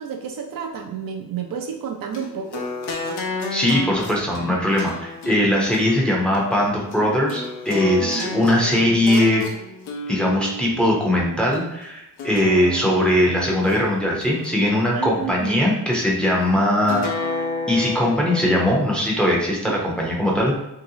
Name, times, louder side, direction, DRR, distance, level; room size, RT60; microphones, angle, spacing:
voice 1, 0.0-2.7 7.8-8.4 12.3-12.5 14.8-15.6 19.7-19.8, right 7 dB, 55° right, 2 dB, 0.5 m, -31 dB
sound 1, 2.1-11.6 12.2-13.8 14.2-15.3 16.9-18.8, left 3 dB, 70° left, 0.8 m, -32 dB
voice 2, 3.5-9.4 10.1-17.0 17.3-20.7, left 1 dB, ahead, -3 dB, 0.6 m, -20 dB
3.0 x 2.8 x 2.7 m, 0.88 s
cardioid pair, 110°, 41 cm